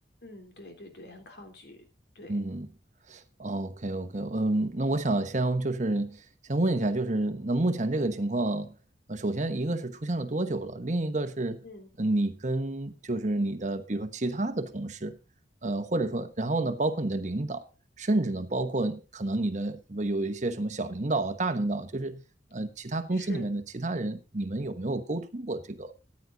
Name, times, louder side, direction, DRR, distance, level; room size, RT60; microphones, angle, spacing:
voice 1, 0.2-1.8 2.1-2.4 11.6-11.9 15.9-16.2 23.1-23.5, left 1 dB, 65° left, 3.3 m, -46 dB
voice 2, 2.3-2.7 3.1-6.2 6.5-8.7 9.1-11.6 12.0-15.2 15.6-17.7 18.0-22.2 22.5-25.9, right 2 dB, 40° right, 1.1 m, -29 dB
14.5 x 9.7 x 3.9 m
head